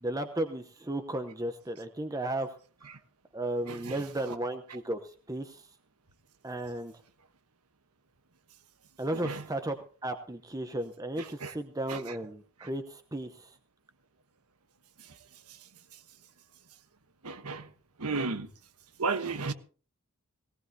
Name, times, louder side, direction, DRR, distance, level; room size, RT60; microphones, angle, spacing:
voice 1, 0.0-2.5 2.8-3.0 3.3-5.0 5.3-5.6 6.4-6.9 9.0-9.8 10.0-13.5, right 1 dB, 15° right, 0.9 m, -34 dB
voice 2, 3.7-4.4 9.1-9.4 11.2-11.5 11.9-12.1 12.6-12.7 17.2-17.7 18.0-18.5 19.0-19.5, right 4 dB, 85° right, 1.3 m, -34 dB
18.5 x 17.5 x 2.9 m
head